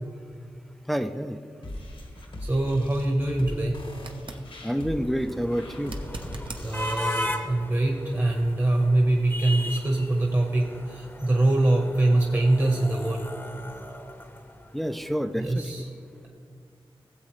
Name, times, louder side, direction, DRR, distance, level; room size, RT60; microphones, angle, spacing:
voice 1, 0.9-1.4 4.6-6.0 14.7-15.7, equal, ahead, 8 dB, 0.5 m, -28 dB
sound 1, 1.6-7.3, left 1 dB, 70° left, 1.5 m, -40 dB
voice 2, 2.5-3.8 6.6-13.3 15.4-15.9, right 2 dB, 30° right, 0 dB, 1.2 m, -23 dB
sound 2, 3.9-4.5 5.8-6.7 9.7-9.8, right 2 dB, 60° right, 0.9 m, -40 dB
sound 3, 4.6-14.9, left 1 dB, 25° left, 0.9 m, -37 dB
17.5 x 7.7 x 3.2 m, 2.3 s
wide cardioid pair, 70°, 10 cm